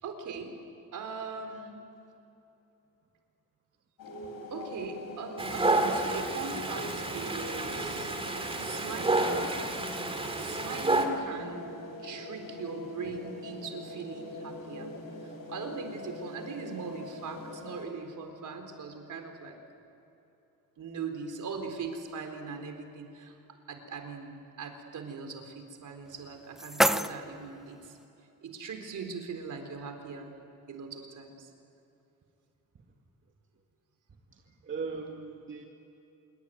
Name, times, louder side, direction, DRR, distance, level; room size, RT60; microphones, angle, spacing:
voice 1, 0.0-0.6 0.9-1.8 4.5-8.1 8.6-9.6 10.4-11.7 12.0-14.9 15.2-19.6 20.8-23.4 23.7-27.9 28.4-30.3 30.7-31.5, right 4 dB, 60° right, 5 dB, 4.2 m, -40 dB
sound 1, 4.0-17.9, left 1 dB, 85° left, 6.3 m, -43 dB
Dog, 5.4-11.1, right 2 dB, 15° right, 2.7 m, -30 dB
sound 2, 26.0-28.0, equal, ahead, 0.5 m, -30 dB
voice 2, 34.3-35.6, right 4 dB, 35° right, 1 dB, 2.3 m, -39 dB
26.5 x 23.5 x 9.4 m, 2.9 s
cardioid pair, 145°, 34 cm